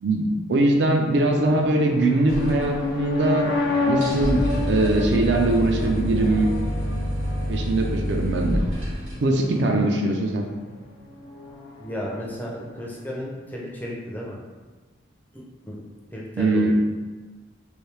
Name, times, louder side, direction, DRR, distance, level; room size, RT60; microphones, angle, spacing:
voice 1, 0.0-3.5 3.9-6.5 7.5-8.6 9.2-10.5 16.4-16.7, right 2 dB, 60° right, 2 dB, 0.4 m, -21 dB
sound 1, 1.3-13.2, left 2 dB, 55° left, 0.6 m, -31 dB
sound 2, 2.3-3.3 3.5-3.6 3.9-9.1, equal, 80° right, 1.2 m, -27 dB
voice 2, 11.8-14.4 15.3-16.7, equal, 10° left, -4 dB, 0.4 m, -34 dB
3.2 x 2.6 x 3.2 m, 1.3 s
head